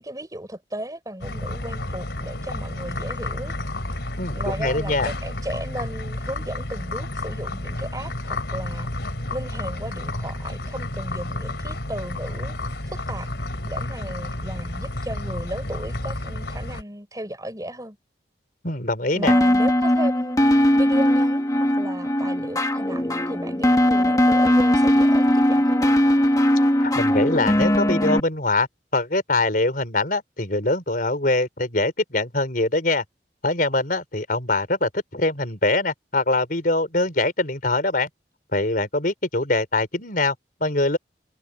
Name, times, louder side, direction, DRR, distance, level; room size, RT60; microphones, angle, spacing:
voice 1, 0.0-3.5 4.3-8.9 9.3-12.6 12.9-13.3 13.6-18.0 19.1-20.4 20.7-26.0, right 1 dB, 20° right, 6.8 m, -35 dB
sound 1, 1.2-16.8, left 1 dB, 65° left, 4.0 m, -31 dB
voice 2, 4.2-5.1 18.6-19.3 26.8-28.7 28.9-33.0 33.4-38.1 38.5-41.0, left 2 dB, 50° left, 4.7 m, -23 dB
sound 2, 19.3-28.2, left 1 dB, 20° left, 1.4 m, -19 dB
head